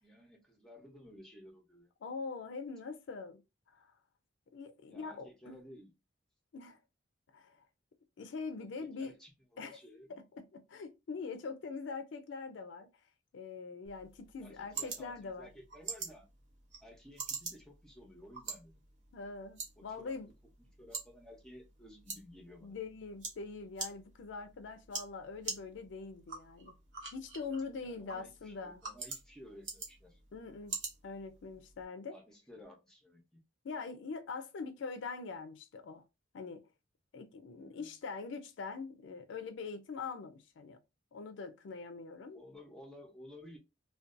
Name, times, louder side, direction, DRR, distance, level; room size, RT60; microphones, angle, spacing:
voice 1, 0.0-1.9 4.8-5.9 8.6-10.1 14.4-16.3 16.8-18.8 19.8-20.3 20.6-22.8 27.8-30.2 32.1-33.4 37.6-37.9 42.3-43.6, equal, 5° left, 0.7 m, -55 dB
voice 2, 2.0-3.4 3.7-3.9 4.5-5.5 6.5-6.8 7.3-7.6 8.2-9.1 9.6-9.8 10.1-12.9 13.3-15.5 19.1-20.3 22.6-26.7 27.1-28.8 30.3-30.8 31.0-32.2 33.6-36.0 36.3-36.6 37.1-40.8 41.1-42.4, left 4 dB, 70° left, 0.4 m, -43 dB
sound 1, 13.8-31.8, right 4 dB, 70° right, 0.8 m, -46 dB
2.5 x 2.2 x 2.4 m
head